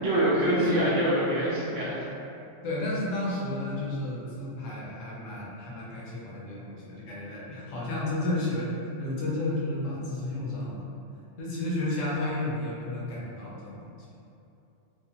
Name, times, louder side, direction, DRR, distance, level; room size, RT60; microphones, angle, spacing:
voice 1, 0.0-2.1, right 1 dB, 75° right, -8 dB, 1.2 m, -25 dB
voice 2, 0.6-0.9 2.6-8.7 9.0-10.9 11.4-13.8, left 1 dB, 85° left, -6 dB, 1.0 m, -32 dB
3.2 x 2.0 x 2.8 m, 2.7 s
omnidirectional pair, 1.3 m